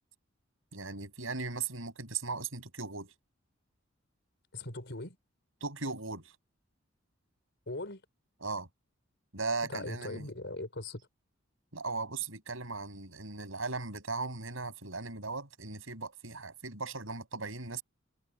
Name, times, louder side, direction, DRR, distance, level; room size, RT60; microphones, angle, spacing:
voice 1, 0.7-3.1 5.6-6.3 8.4-8.7 9.3-10.3 11.7-17.8, right 4 dB, 80° right, 7.1 m, -38 dB
voice 2, 4.5-5.2 7.7-8.0 9.7-11.0, left 2 dB, 60° left, 5.4 m, -40 dB
head